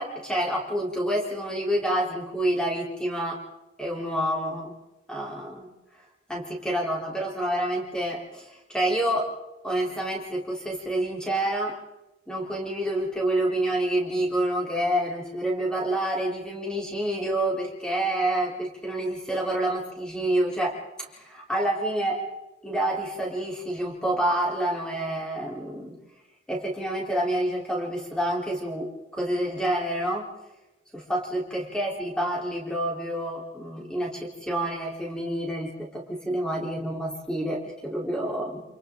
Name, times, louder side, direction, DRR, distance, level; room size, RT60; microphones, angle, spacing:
voice 1, 0.0-3.4 3.8-4.7 5.1-5.7 6.3-9.3 9.6-11.8 12.3-20.7 21.1-22.3 22.6-25.9 26.5-30.3 30.9-38.6, right 1 dB, 5° left, -3 dB, 4.0 m, -28 dB
28.5 x 27.5 x 3.9 m, 1.0 s
head